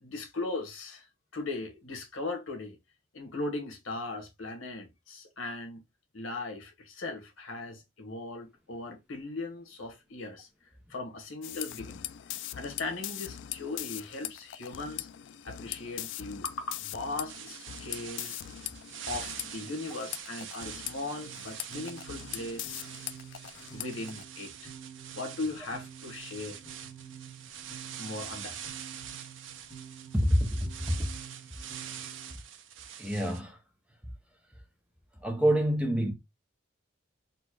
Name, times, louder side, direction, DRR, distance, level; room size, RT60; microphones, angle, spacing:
voice 1, 0.0-1.1 1.3-2.8 3.1-5.8 6.1-10.5 10.9-12.0 12.5-15.1 15.4-18.4 19.1-22.9 23.7-24.7 25.1-26.6 28.0-28.6, left 2 dB, 90° left, 1.3 m, -38 dB
sound 1, 11.4-24.2, left 13 dB, 65° left, 0.3 m, -41 dB
sound 2, 17.3-33.4, right 9 dB, 75° right, 0.6 m, -45 dB
sound 3, 21.2-32.3, right 8 dB, 25° left, 1.3 m, -49 dB
voice 2, 30.1-31.0 33.0-33.6 35.2-36.1, equal, 5° right, 0.7 m, -26 dB
4.2 x 2.2 x 4.5 m
head